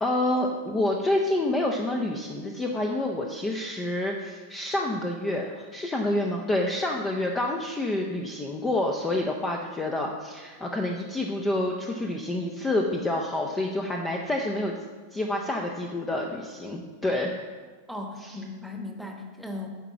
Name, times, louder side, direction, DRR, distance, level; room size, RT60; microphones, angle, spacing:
voice 1, 0.0-14.7 15.1-17.3 18.2-18.3, left 1 dB, 15° left, 1 dB, 0.7 m, -28 dB
voice 2, 17.9-19.7, left 2 dB, ahead, 2 dB, 1.2 m, -37 dB
9.3 x 5.0 x 7.1 m, 1.5 s
figure-of-eight pair, 90°, 0 cm